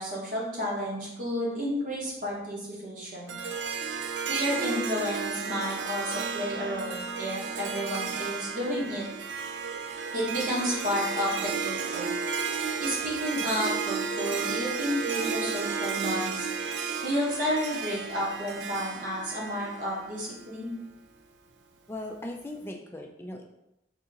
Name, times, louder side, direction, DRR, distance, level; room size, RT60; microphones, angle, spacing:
voice 1, 0.0-3.4 4.3-9.1 10.1-12.1 12.8-16.5 17.0-20.8, equal, 45° right, -4 dB, 1.0 m, -31 dB
Harp, 3.3-20.5, right 5 dB, 85° right, 0.4 m, -33 dB
voice 2, 21.9-23.4, left 1 dB, 15° left, 1 dB, 0.3 m, -38 dB
2.8 x 2.7 x 3.7 m, 0.87 s
head